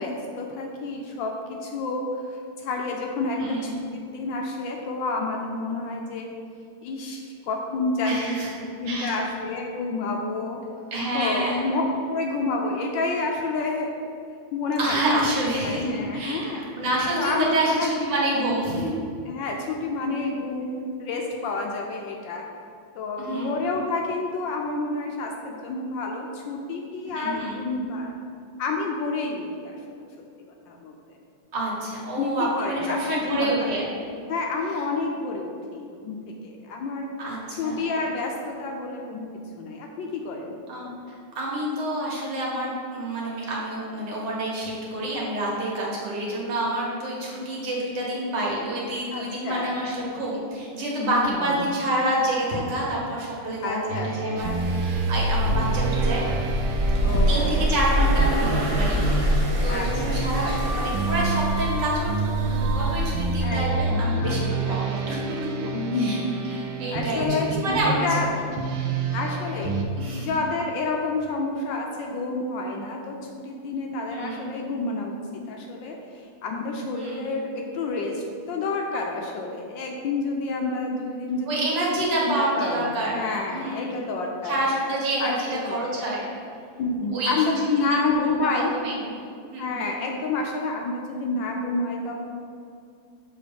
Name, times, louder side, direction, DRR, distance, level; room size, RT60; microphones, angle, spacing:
voice 1, 0.0-6.3 6.8-8.3 8.6-10.6 11.1-11.8 12.1-13.9 14.5-15.2 15.6-16.6 17.2-17.9 19.3-20.7 21.0-22.4 22.9-28.1 28.6-29.8 30.7-31.2 32.2-33.7 34.3-37.1 37.6-40.6 49.1-49.8 51.0-51.7 53.6-54.6 57.0-57.6 59.7-60.2 60.4-60.6 63.4-64.4 64.7-64.8 65.6-66.4 66.9-68.3 69.1-69.7 70.2-75.2 75.5-81.6 81.9-84.6 85.2-85.8 86.8-88.7 89.6-92.2, left 3 dB, 70° left, 1 dB, 1.2 m, -29 dB
voice 2, 3.4-3.8 8.0-8.5 8.9-9.2 10.9-11.6 14.8-15.8 16.1-18.9 23.2-23.6 27.1-27.6 31.5-33.9 37.2-37.8 40.7-56.3 57.0-65.3 65.9-67.2 67.5-68.2 70.0-70.3 74.1-74.5 76.9-77.2 81.5-83.2 83.5-84.1 84.4-86.2 87.1-87.3 87.9-89.1 89.5-89.8, right 1 dB, 60° right, -4 dB, 1.7 m, -28 dB
sound 1, 53.9-69.9, right 3 dB, 75° right, 1.3 m, -28 dB
sound 2, 54.4-63.4, equal, 40° right, 1.0 m, -25 dB
6.9 x 3.1 x 5.0 m, 2.4 s
omnidirectional pair, 2.3 m